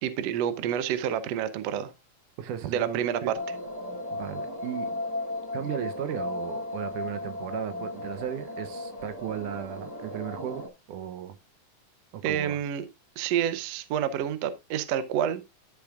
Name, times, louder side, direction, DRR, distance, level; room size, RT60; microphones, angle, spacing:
voice 1, 0.0-1.9 2.7-3.4 12.2-12.9 13.2-15.4, right 9 dB, 70° right, 1.8 m, -28 dB
voice 2, 2.4-3.4 4.1-4.9 5.5-11.4 12.1-12.6, right 10 dB, 85° right, 2.4 m, -36 dB
sound 1, 3.3-10.7, left 2 dB, 20° right, 0.6 m, -35 dB
12.5 x 7.1 x 2.5 m
omnidirectional pair, 3.6 m